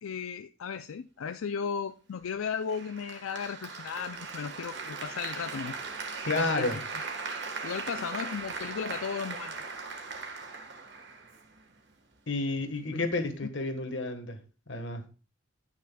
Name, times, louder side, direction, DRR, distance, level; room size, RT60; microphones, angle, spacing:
voice 1, 0.0-5.8 6.3-7.0 7.6-9.5 12.9-13.1 13.4-13.5, left 6 dB, 85° left, 0.4 m, -35 dB
Applause, 2.7-11.7, right 4 dB, 55° right, 1.4 m, -39 dB
voice 2, 6.2-6.8 12.3-14.4 14.7-15.0, left 2 dB, 60° left, 1.4 m, -30 dB
16.0 x 6.0 x 2.3 m
head